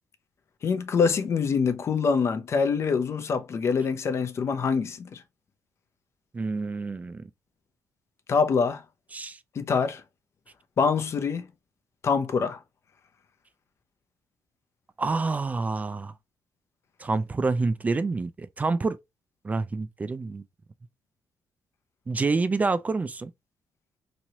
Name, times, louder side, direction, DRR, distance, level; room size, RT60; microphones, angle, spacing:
voice 1, 0.6-5.2 8.3-8.8 9.6-10.0 10.8-11.5 12.0-12.6, left 5 dB, 50° left, 0.6 m, -25 dB
voice 2, 6.3-7.3 9.1-9.4 15.0-16.1 17.0-19.0 19.4-20.4 22.1-23.3, right 3 dB, 25° right, 0.3 m, -27 dB
3.0 x 2.8 x 2.7 m
cardioid pair, 85°, 6 cm